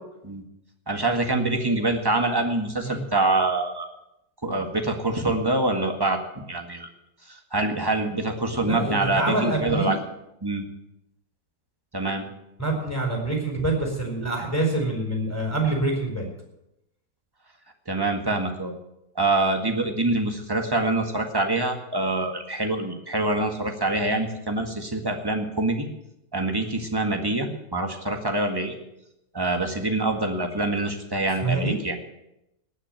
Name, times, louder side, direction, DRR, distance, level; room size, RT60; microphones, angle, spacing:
voice 1, 0.9-3.9 4.4-6.9 7.3-10.0 10.4-10.7 11.9-12.3 17.9-18.7 19.1-25.9 26.3-28.7 29.3-32.0, right 2 dB, 15° right, 4 dB, 1.7 m, -25 dB
voice 2, 8.6-9.9 12.6-16.3 24.1-24.2 31.4-31.8, right 2 dB, 10° left, 0 dB, 4.6 m, -26 dB
19.0 x 6.4 x 9.0 m, 0.86 s
omnidirectional pair, 1.8 m